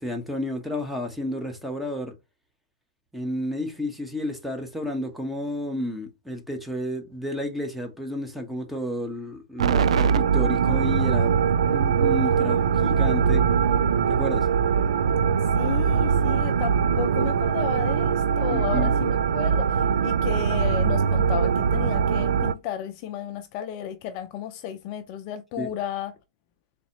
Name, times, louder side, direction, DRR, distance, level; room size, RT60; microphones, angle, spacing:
voice 1, 0.0-2.1 3.1-11.3 11.7-13.4 14.1-14.5 18.5-18.9 25.6-25.7, equal, 5° right, 1.0 m, -31 dB
sound 1, 9.6-22.5, right 6 dB, 70° right, 0.3 m, -22 dB
voice 2, 15.5-26.1, left 10 dB, 40° left, 0.5 m, -33 dB
4.0 x 3.3 x 2.9 m
hypercardioid pair, 130°, 3 cm